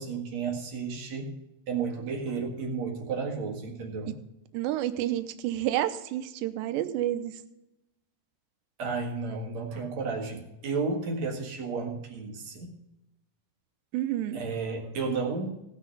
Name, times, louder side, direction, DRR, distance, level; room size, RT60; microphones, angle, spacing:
voice 1, 0.0-1.4 1.7-4.1 8.8-12.7 14.3-15.5, right 4 dB, 50° right, 2 dB, 2.4 m, -32 dB
voice 2, 4.5-7.3 13.9-14.4, right 13 dB, 85° right, 10 dB, 3.0 m, -29 dB
18.0 x 6.4 x 5.4 m, 0.88 s
omnidirectional pair, 4.9 m